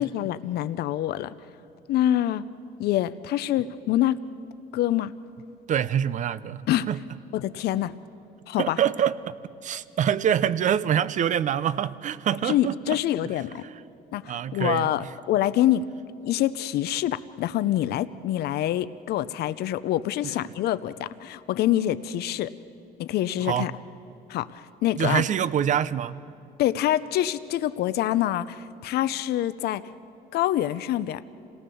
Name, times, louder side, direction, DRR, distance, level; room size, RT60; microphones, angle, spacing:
voice 1, 0.0-1.3 1.9-2.4 2.8-4.2 4.7-5.1 6.7-6.9 7.3-7.9 8.5-8.8 12.4-13.6 14.1-15.9 16.2-22.5 23.0-23.7 24.3-25.2 26.6-29.8 30.3-31.2, left 12 dB, 70° left, 14 dB, 0.7 m, -26 dB
voice 2, 5.7-6.6 6.9-7.0 8.6-9.4 9.6-13.0 14.3-15.1 20.4-20.5 23.4-23.7 25.0-26.2, right 9 dB, 45° right, 17 dB, 0.7 m, -25 dB
27.5 x 18.0 x 7.0 m, 2.6 s
cardioid pair, 110°, 17 cm